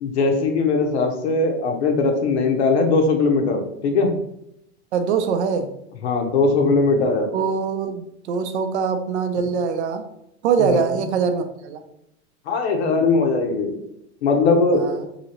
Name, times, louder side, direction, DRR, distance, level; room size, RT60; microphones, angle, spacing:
voice 1, 0.0-4.1 6.0-7.3 10.6-10.8 12.5-13.8 14.2-14.8, left 3 dB, 70° left, 4 dB, 0.7 m, -20 dB
voice 2, 4.9-5.7 7.3-10.0 10.4-11.8 14.7-15.1, right 6 dB, 70° right, 7 dB, 0.5 m, -23 dB
2.8 x 2.7 x 2.9 m, 0.79 s
supercardioid pair, 155°, 35 cm